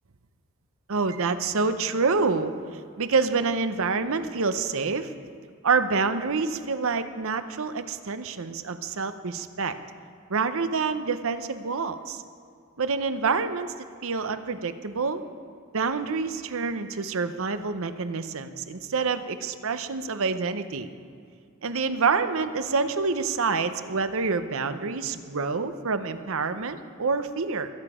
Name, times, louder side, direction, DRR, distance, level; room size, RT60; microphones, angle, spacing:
voice 1, 0.9-2.5 3.0-5.1 5.6-9.7 10.3-12.2 12.8-13.7 14.0-15.2 15.7-20.9 21.6-27.7, right 4 dB, 65° right, 11 dB, 0.7 m, -27 dB
22.0 x 9.0 x 5.0 m, 2.3 s
head